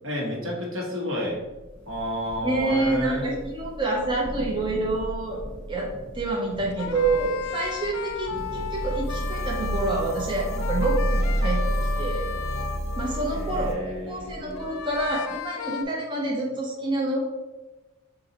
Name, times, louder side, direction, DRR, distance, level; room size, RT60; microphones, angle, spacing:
voice 1, 0.0-1.4 1.9-3.2 13.3-14.6, left 1 dB, 70° right, -2 dB, 1.2 m, -31 dB
Thunder / Rain, 1.3-15.4, equal, 40° right, 1.4 m, -40 dB
voice 2, 2.4-5.4 5.7-12.2 13.0-17.2, right 2 dB, 25° right, -3 dB, 0.5 m, -27 dB
sound 1, 6.7-13.8 14.5-15.8, left 7 dB, 80° left, 0.3 m, -35 dB
sound 2, 8.4-13.7, equal, 35° left, 0.6 m, -28 dB
4.1 x 2.5 x 3.8 m, 1.1 s
head